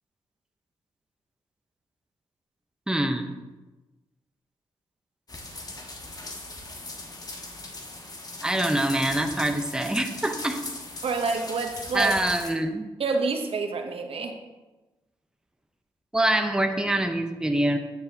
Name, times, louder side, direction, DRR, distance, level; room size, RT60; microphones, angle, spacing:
voice 1, 2.9-3.3 8.4-10.6 11.9-12.9 16.1-17.8, right 1 dB, 5° right, 5 dB, 0.8 m, -25 dB
sound 1, 5.3-12.5, left 2 dB, 40° left, 1.4 m, -39 dB
voice 2, 11.0-12.1 13.0-14.3, right 4 dB, 65° right, 4 dB, 0.9 m, -28 dB
8.7 x 7.9 x 2.8 m, 1.1 s
cardioid pair, 55°, 10 cm